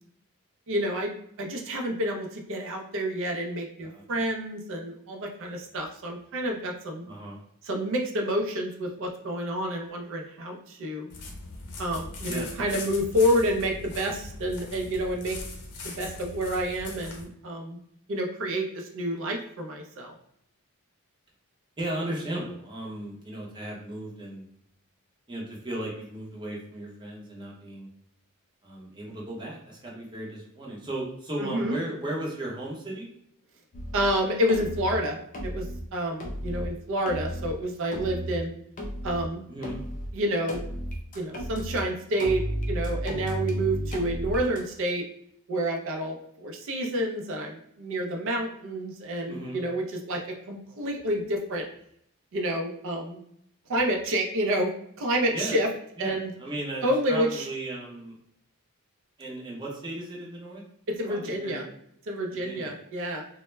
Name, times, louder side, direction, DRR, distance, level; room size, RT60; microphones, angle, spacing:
voice 1, 0.7-1.1 1.4-7.0 7.6-11.1 11.8-15.4 15.8-17.8 18.1-20.1 31.4-31.7 33.9-35.2 35.4-38.5 39.0-39.4 40.1-40.6 41.1-45.1 45.5-50.2 50.5-51.6 52.3-53.2 53.7-54.7 55.0-55.7 56.0-56.3 56.8-57.5 60.9-61.6 62.1-63.2, equal, 60° right, 2 dB, 0.4 m, -29 dB
voice 2, 7.1-7.4 12.3-12.5 21.8-24.5 25.3-27.9 28.6-33.1 39.5-39.8 49.3-49.6 55.3-55.6 56.0-58.2 59.2-60.6 61.0-61.6 62.3-62.7, right 1 dB, 20° right, -4 dB, 0.7 m, -36 dB
sound 1, 11.1-17.2, left 2 dB, 85° left, 0.6 m, -40 dB
sound 2, 33.7-34.1 34.5-35.0 35.3-35.8 36.2-36.7 37.1-37.5 37.9-38.4 38.8-39.2 39.6-40.1 40.5-41.8 42.2-44.6, equal, 35° left, 0.4 m, -33 dB
2.1 x 2.1 x 3.1 m, 0.71 s
head